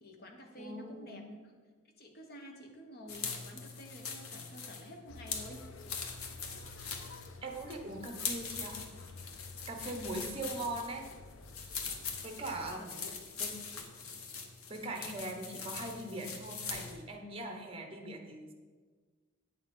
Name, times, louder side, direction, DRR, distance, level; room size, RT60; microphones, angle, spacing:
voice 1, 0.0-1.2 2.0-5.7 12.8-13.1, equal, 45° left, 2 dB, 1.3 m, -50 dB
voice 2, 0.6-1.2 7.4-8.8 9.7-11.1 12.2-12.9 13.4-13.6 14.7-18.5, right 2 dB, 25° right, 4 dB, 1.1 m, -41 dB
sound 1, 3.1-17.0, left 5 dB, 80° left, 1.2 m, -42 dB
sound 2, 5.1-12.8, left 3 dB, 65° left, 0.5 m, -51 dB
8.9 x 6.9 x 5.5 m, 1.5 s
head